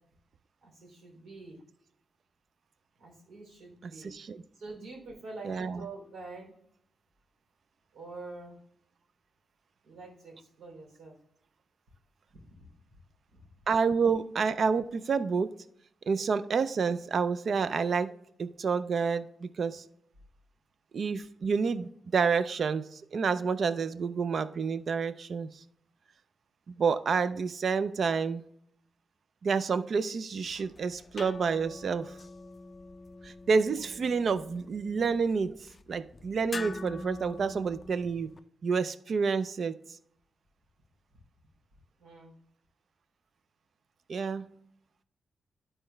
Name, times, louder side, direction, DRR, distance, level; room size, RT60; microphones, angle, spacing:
voice 1, 0.6-1.6 3.0-4.1 4.5-6.5 7.9-8.6 9.8-11.2 12.3-12.7 13.3-13.5 42.0-42.3, right 3 dB, 85° right, 3.2 m, -46 dB
voice 2, 4.0-4.4 5.4-5.8 13.7-15.5 16.1-18.1 18.4-19.8 20.9-25.5 26.8-28.4 29.4-32.1 33.2-35.5 35.9-38.3 38.6-39.7 44.1-44.4, right 5 dB, 55° right, 0.4 m, -29 dB
sound 1, 30.4-38.4, left 3 dB, 30° left, 0.4 m, -45 dB
11.5 x 4.3 x 3.3 m
cardioid pair, 110°, 0 cm